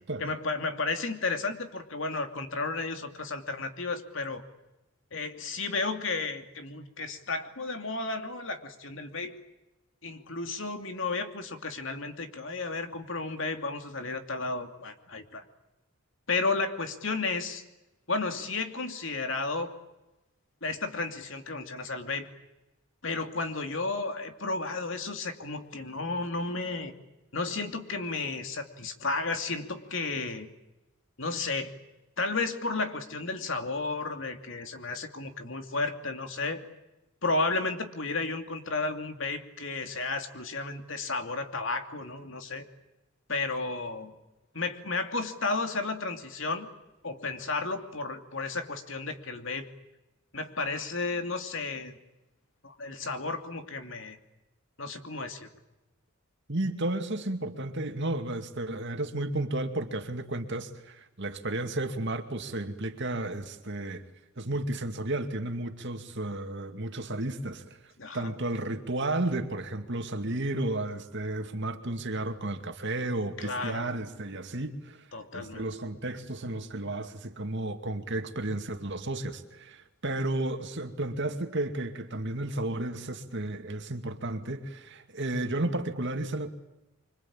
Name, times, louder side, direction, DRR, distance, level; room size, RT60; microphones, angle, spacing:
voice 1, 0.2-4.4 5.1-9.4 10.0-15.4 16.3-17.6 18.1-19.7 20.6-22.3 23.0-26.9 27.3-30.5 31.2-31.7 32.2-36.6 37.2-42.6 43.3-44.1 44.5-46.7 47.0-49.7 50.3-51.9 52.6-54.2 54.8-55.5 68.0-68.3 73.4-74.0 75.1-75.7, left 3 dB, 60° left, 2.8 m, -33 dB
voice 2, 56.5-64.0 64.4-75.1 75.3-86.5, right 2 dB, 60° right, 2.4 m, -33 dB
25.5 x 25.5 x 8.8 m
head